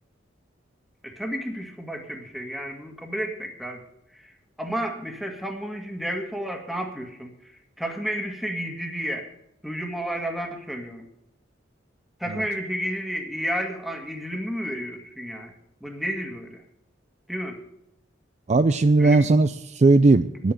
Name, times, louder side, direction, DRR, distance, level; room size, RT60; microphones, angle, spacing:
voice 1, 1.0-3.8 4.1-4.3 4.6-9.3 9.6-11.0 12.2-15.5 15.8-16.6 17.3-17.6 19.0-19.3, equal, ahead, 3 dB, 1.7 m, -31 dB
voice 2, 18.5-20.5, right 3 dB, 40° right, 11 dB, 0.4 m, -18 dB
10.0 x 8.5 x 9.1 m, 0.81 s
head